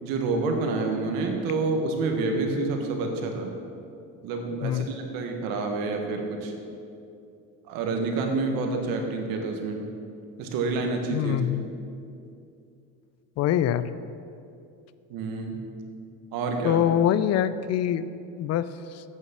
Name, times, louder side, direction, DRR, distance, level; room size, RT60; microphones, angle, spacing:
voice 1, 0.0-3.5 4.2-6.5 7.7-9.8 10.4-11.4 15.1-15.6 16.3-16.8, right 3 dB, 75° right, 3 dB, 1.6 m, -28 dB
voice 2, 11.1-11.7 13.4-13.8 16.6-18.1 18.4-19.0, left 10 dB, 50° left, 15 dB, 0.4 m, -24 dB
8.6 x 6.4 x 7.3 m, 2.6 s
supercardioid pair, 100°, 35 cm